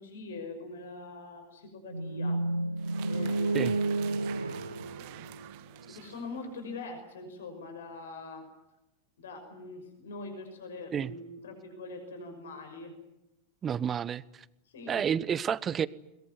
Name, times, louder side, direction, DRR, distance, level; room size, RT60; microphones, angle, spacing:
voice 1, 0.0-2.4 3.0-4.3 5.0-5.1 5.9-8.4 9.2-12.9 14.7-15.1, left 3 dB, 65° left, 6 dB, 5.9 m, -43 dB
sound 1, 1.9-6.0, right 2 dB, 80° right, 1.3 m, -31 dB
sound 2, 2.8-6.9, right 17 dB, 45° right, 1.5 m, -49 dB
voice 2, 13.6-14.4 14.9-15.9, right 8 dB, 25° right, 20 dB, 0.9 m, -30 dB
22.5 x 21.5 x 9.7 m, 0.90 s
figure-of-eight pair, 90°, 0 cm